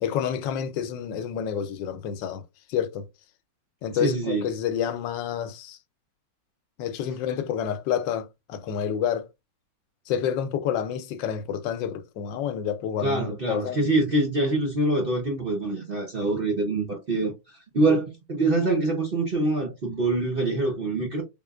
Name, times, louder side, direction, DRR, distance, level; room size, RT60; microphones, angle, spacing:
voice 1, 0.0-2.4 2.7-3.1 3.8-5.8 6.8-9.3 10.1-13.9, left 8 dB, 85° left, 1.3 m, -29 dB
voice 2, 3.9-4.5 13.0-21.2, right 2 dB, 50° right, 0.7 m, -25 dB
3.6 x 3.4 x 2.3 m
omnidirectional pair, 1.9 m